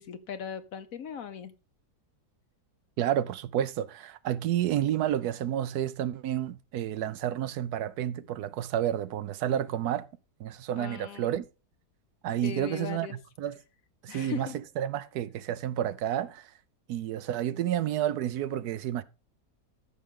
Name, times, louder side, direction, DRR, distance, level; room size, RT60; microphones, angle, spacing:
voice 1, 0.0-1.5 10.7-11.4 12.4-13.2 14.1-14.6, left 7 dB, 60° left, 1.2 m, -39 dB
voice 2, 3.0-10.1 10.4-11.5 12.2-13.6 14.0-14.5 14.8-16.5 16.9-19.0, right 11 dB, 75° right, 1.1 m, -30 dB
13.5 x 6.3 x 3.6 m
omnidirectional pair, 1.7 m